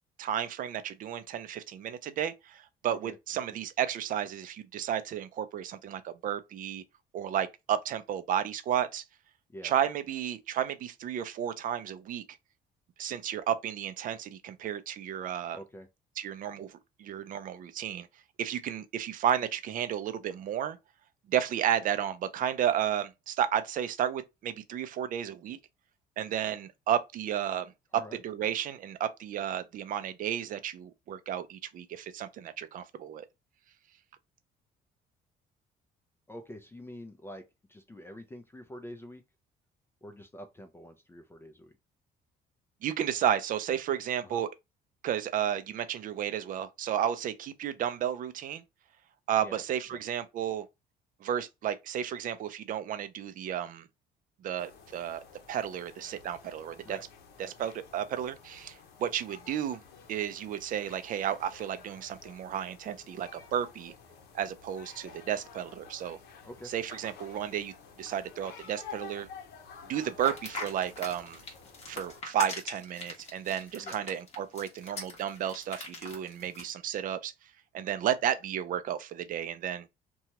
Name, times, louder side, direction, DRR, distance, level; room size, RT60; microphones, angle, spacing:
voice 1, 0.2-6.8 7.1-9.0 9.6-12.2 13.0-15.6 16.2-18.1 18.4-20.8 21.3-25.6 26.2-27.7 28.2-33.2 42.8-44.5 45.0-48.6 49.3-50.6 51.2-53.9 54.4-55.2 55.5-57.0 57.4-59.8 60.1-63.9 64.3-66.2 66.7-67.7 68.0-69.3 69.9-71.4 71.9-77.3 77.7-79.9, right 10 dB, 55° right, 0.5 m, -32 dB
voice 2, 15.5-15.9 27.9-28.2 36.3-39.2 40.0-41.8 44.2-44.4 49.4-49.6 49.9-50.0 56.8-57.0 66.4-66.7 73.8-74.0, equal, 15° left, 0.5 m, -46 dB
sound 1, 54.6-72.2, left 6 dB, 75° left, 0.8 m, -51 dB
sound 2, 70.2-76.7, left 2 dB, 40° left, 1.2 m, -41 dB
2.9 x 2.3 x 2.8 m
cardioid pair, 110°, 17 cm